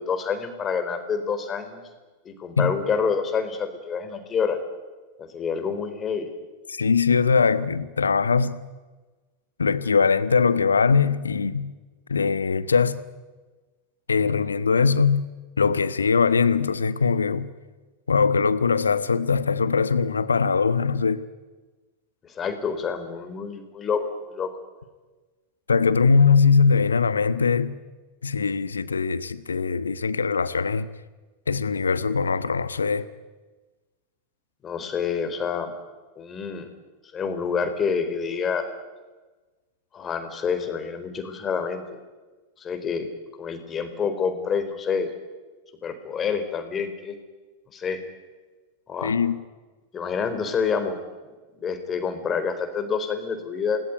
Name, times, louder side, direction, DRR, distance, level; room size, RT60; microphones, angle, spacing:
voice 1, 0.0-1.8 2.2-4.6 5.2-6.3 22.2-24.5 34.6-35.7 36.2-36.7 37.1-38.6 39.9-42.0 42.6-43.1 43.4-45.1 45.8-47.2 47.7-48.0 48.9-49.1 49.9-51.0 51.6-53.8, left 6 dB, 25° left, 4.3 m, -27 dB
voice 2, 6.7-8.6 9.6-11.7 12.1-13.0 14.1-15.3 15.6-17.5 18.1-21.2 25.7-27.8 28.2-30.9 31.5-33.1 49.0-49.4, left 5 dB, 75° left, 1.3 m, -21 dB
28.0 x 20.0 x 9.5 m
figure-of-eight pair, 90°, 0 cm